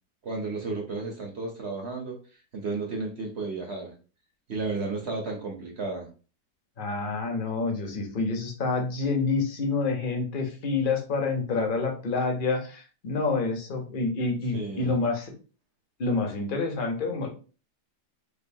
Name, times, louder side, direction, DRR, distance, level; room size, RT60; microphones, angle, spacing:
voice 1, 0.2-2.2 2.5-3.9 4.5-6.1 14.5-15.0, right 3 dB, 50° right, 0 dB, 0.9 m, -33 dB
voice 2, 6.8-15.3 16.0-17.3, left 3 dB, 40° left, 3 dB, 0.8 m, -28 dB
4.5 x 2.6 x 2.6 m, 0.36 s
omnidirectional pair, 1.8 m